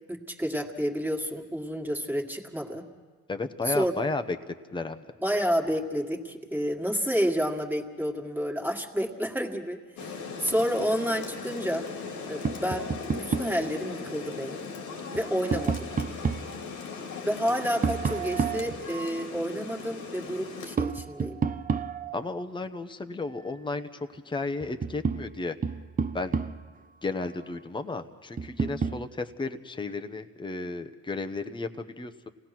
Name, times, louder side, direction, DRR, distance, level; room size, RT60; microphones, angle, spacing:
voice 1, 0.1-2.9 3.7-3.9 5.2-11.9 12.3-14.6 15.1-15.9 17.3-21.4, equal, 5° right, 1 dB, 2.0 m, -30 dB
voice 2, 3.3-5.1 22.1-25.6 26.1-26.4 27.0-32.3, left 3 dB, 15° left, 8 dB, 1.0 m, -33 dB
Rain, 10.0-20.8, left 4 dB, 85° left, 2.4 m, -39 dB
Tap, 12.4-13.6 15.0-16.5 17.8-19.3 20.8-22.3 24.1-24.2 24.6-26.8 28.4-29.0, right 5 dB, 30° right, 0.6 m, -30 dB
27.0 x 18.0 x 6.0 m, 1.4 s
cardioid pair, 90°, 30 cm